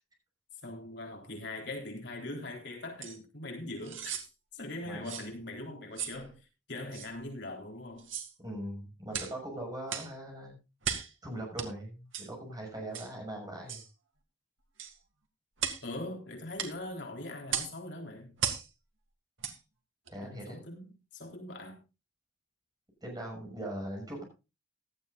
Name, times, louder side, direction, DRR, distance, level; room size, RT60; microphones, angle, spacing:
voice 1, 0.6-4.2 4.5-8.1 15.8-18.3 20.2-21.8, left 2 dB, 60° left, 3.8 m, -41 dB
sound 1, 3.0-3.2 3.8-4.3 5.0-5.3 5.9-6.2 6.9-7.1 8.0-8.3 9.1-9.4 9.9-10.1 10.8-11.1 11.6-11.7 12.1-12.3 12.9-13.1 13.7-13.9 14.8-15.0 15.6-15.8 16.6-16.7 17.5-17.8 18.4-18.7 19.4-19.6 20.1-20.2, right 8 dB, 80° right, 2.2 m, -36 dB
voice 2, 8.4-10.6 11.2-13.8 20.1-20.6 23.0-24.2, right 1 dB, 20° right, 6.4 m, -40 dB
17.0 x 12.5 x 2.5 m
head